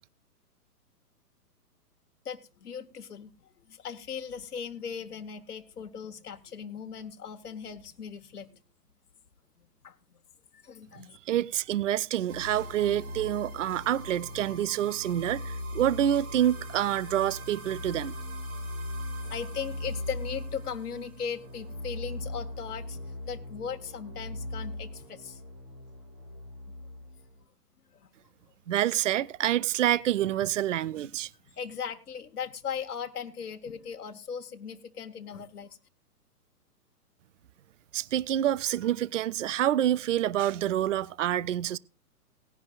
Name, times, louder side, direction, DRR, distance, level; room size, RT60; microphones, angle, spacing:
voice 1, 2.2-3.3 3.7-8.6 9.8-9.9 10.5-11.2 19.3-25.4 27.9-28.1 31.6-35.8, left 7 dB, 70° left, 1.2 m, -38 dB
voice 2, 11.3-18.1 28.7-31.3 37.9-41.8, right 11 dB, 55° right, 0.5 m, -27 dB
sound 1, 12.3-27.4, left 1 dB, 35° right, 2.2 m, -39 dB
18.5 x 10.5 x 2.4 m
figure-of-eight pair, 125°, 48 cm